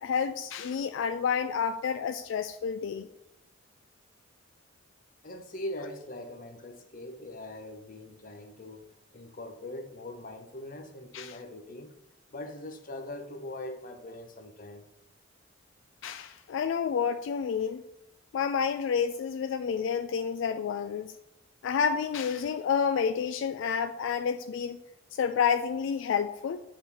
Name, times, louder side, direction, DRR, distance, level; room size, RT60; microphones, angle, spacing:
voice 1, 0.0-3.1 11.1-11.4 16.0-17.8 18.3-21.1 21.6-24.8 25.1-26.6, left 7 dB, 75° left, 0.3 m, -29 dB
voice 2, 5.2-8.9 9.1-11.9 12.3-14.9, left 1 dB, 45° left, 0.7 m, -41 dB
8.1 x 3.9 x 4.2 m
head